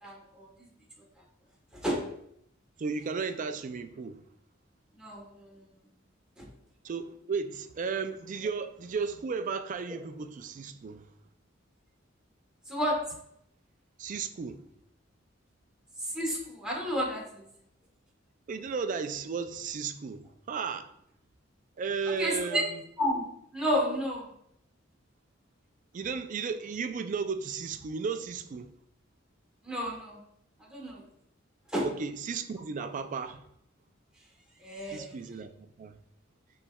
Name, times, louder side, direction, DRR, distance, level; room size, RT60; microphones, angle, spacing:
voice 1, 0.0-0.5 1.7-2.0 4.9-5.7 6.4-6.5 12.7-13.0 16.0-17.5 22.2-22.6 23.0-23.2 23.5-24.3 29.6-30.2 30.6-31.0 31.7-31.9 34.6-35.1, equal, 5° right, 1.1 m, -31 dB
voice 2, 2.8-4.3 6.8-11.1 14.0-14.6 18.5-20.9 21.8-22.8 25.9-28.7 31.8-33.4 34.9-36.0, right 5 dB, 40° right, 0.3 m, -34 dB
7.0 x 3.1 x 2.3 m
head